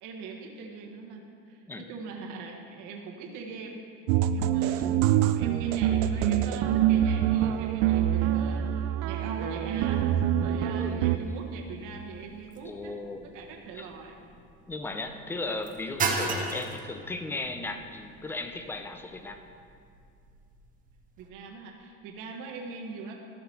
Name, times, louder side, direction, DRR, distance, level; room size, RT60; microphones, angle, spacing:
voice 1, 0.0-3.8 4.3-12.9 13.3-14.2 21.2-23.2, right 4 dB, 70° right, 0 dB, 1.4 m, -41 dB
sound 1, 4.1-11.2, right 11 dB, 85° right, 0.5 m, -25 dB
sound 2, 11.2-21.3, right 4 dB, 25° right, 0.8 m, -38 dB
voice 2, 12.7-13.3 13.7-13.9 14.7-19.4, left 2 dB, 5° left, 6 dB, 0.4 m, -36 dB
13.5 x 6.0 x 4.4 m, 2.4 s
cardioid pair, 150°, 32 cm